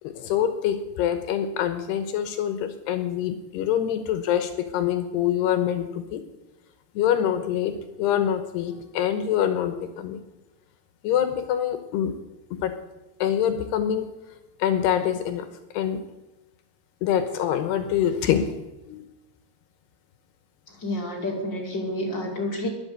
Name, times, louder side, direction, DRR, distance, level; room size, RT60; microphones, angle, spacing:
voice 1, 0.0-6.2 7.0-10.2 11.0-12.1 12.5-12.8 13.2-14.1 14.6-15.5 15.7-16.0 17.0-18.5 18.9-19.0, left 10 dB, 75° left, 9 dB, 2.8 m, -25 dB
voice 2, 20.7-22.7, left 1 dB, 30° left, 0 dB, 2.6 m, -29 dB
21.0 x 8.3 x 8.0 m, 1.0 s
omnidirectional pair, 5.3 m